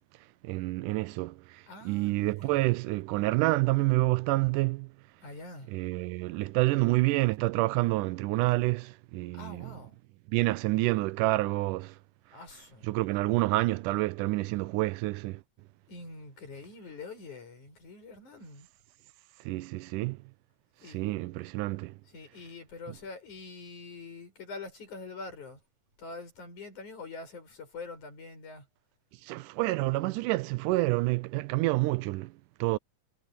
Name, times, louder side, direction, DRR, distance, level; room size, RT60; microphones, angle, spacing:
voice 1, 0.4-4.9 5.7-9.7 10.3-12.0 12.8-15.4 19.4-20.2 20.9-22.0 29.2-32.8, right 20 dB, 85° right, 2.1 m, -28 dB
voice 2, 1.7-2.7 5.2-5.7 9.3-10.0 12.3-12.9 15.9-18.7 20.8-21.0 22.1-25.6 26.0-28.7, left 3 dB, 65° left, 8.7 m, -45 dB
omnidirectional pair, 3.6 m